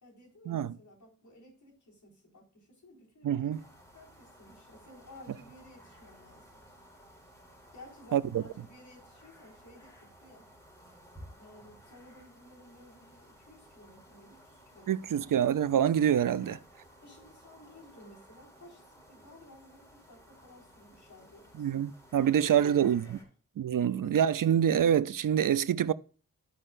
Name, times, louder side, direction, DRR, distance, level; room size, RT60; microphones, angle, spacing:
voice 1, 0.0-3.6 3.9-6.6 7.7-10.5 11.3-15.4 16.4-16.6 17.0-21.7 22.2-23.3 23.9-24.2, left 1 dB, 60° left, 4.4 m, -55 dB
voice 2, 3.2-3.6 8.1-8.4 14.9-16.6 21.6-23.2 23.6-25.9, right 9 dB, 70° right, 0.5 m, -26 dB
sound 1, 3.5-23.2, equal, 10° left, 4.4 m, -56 dB
14.0 x 5.5 x 2.5 m
wide cardioid pair, 100°, 33 cm